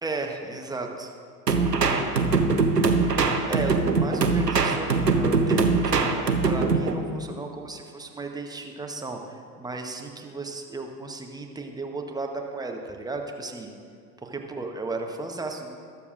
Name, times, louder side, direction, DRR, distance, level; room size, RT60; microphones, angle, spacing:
voice 1, 0.0-1.1 1.5-2.3 3.5-13.7 14.2-15.8, right 3 dB, 10° right, 3 dB, 1.0 m, -35 dB
sound 1, 1.5-7.0, right 4 dB, 90° right, 0.7 m, -22 dB
20.5 x 7.0 x 2.5 m, 2.2 s
figure-of-eight pair, 65°, 47 cm